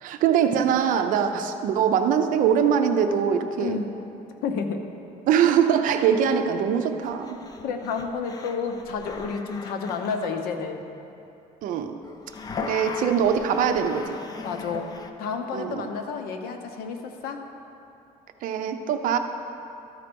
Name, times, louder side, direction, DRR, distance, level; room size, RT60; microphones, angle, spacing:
voice 1, 0.0-3.8 5.3-7.4 11.6-12.0 12.6-14.2 15.5-15.9 18.4-19.2, right 8 dB, 65° right, 7 dB, 0.6 m, -22 dB
voice 2, 3.6-4.0 4.4-4.8 7.6-10.8 14.4-17.4, left 5 dB, 90° left, 5 dB, 0.8 m, -31 dB
sound 1, 6.2-6.3 7.0-10.4 12.0-15.1, left 4 dB, 25° left, 0.4 m, -38 dB
13.0 x 4.4 x 5.2 m, 2.9 s
cardioid pair, 155°, 15 cm